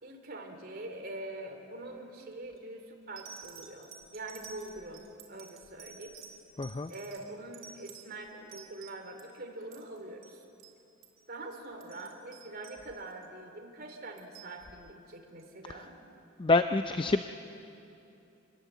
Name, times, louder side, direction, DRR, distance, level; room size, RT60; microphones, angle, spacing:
voice 1, 0.0-6.1 6.9-10.4 11.3-15.9 17.0-17.2, right 2 dB, 50° right, 3 dB, 3.0 m, -44 dB
sound 1, 2.3-2.6 3.2-9.3 9.6-10.0 10.2-10.3 10.6-10.8 11.0-11.2 11.6-13.3 13.9-14.5 15.4-15.5, right 7 dB, 80° right, 3.6 m, -51 dB
voice 2, 6.6-6.9 16.4-17.2, left 3 dB, 25° left, 9 dB, 0.5 m, -26 dB
26.5 x 21.0 x 8.3 m, 2.8 s
head